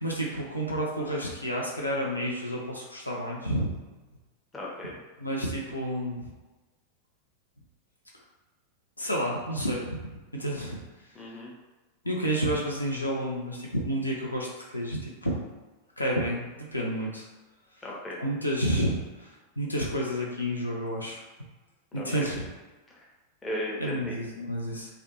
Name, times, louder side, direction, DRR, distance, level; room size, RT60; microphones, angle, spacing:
voice 1, 0.0-3.8 5.2-6.3 9.0-10.8 12.0-14.5 14.7-15.4 16.0-17.3 18.2-21.2 21.9-22.4 23.8-24.9, equal, 85° left, -2 dB, 0.4 m, -30 dB
voice 2, 4.5-4.9 11.1-11.5 17.8-18.2 21.9-22.3 22.9-23.0 23.4-24.2, left 1 dB, 15° left, -4 dB, 0.6 m, -36 dB
2.4 x 2.1 x 2.8 m, 1.2 s
figure-of-eight pair, 90°, 0 cm